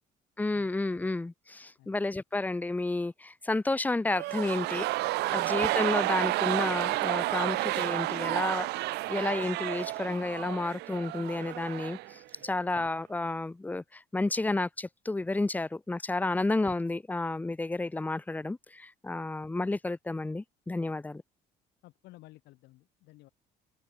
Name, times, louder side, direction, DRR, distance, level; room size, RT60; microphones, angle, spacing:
voice 1, 0.4-4.9 5.3-21.2, left 2 dB, 10° left, 0.6 m, -31 dB
sound 1, 4.1-12.2 12.4-12.5, right 19 dB, 75° right, 0.5 m, -31 dB
voice 2, 21.8-23.3, left 18 dB, 85° left, 7.9 m, -55 dB
open air
cardioid pair, 110°, 17 cm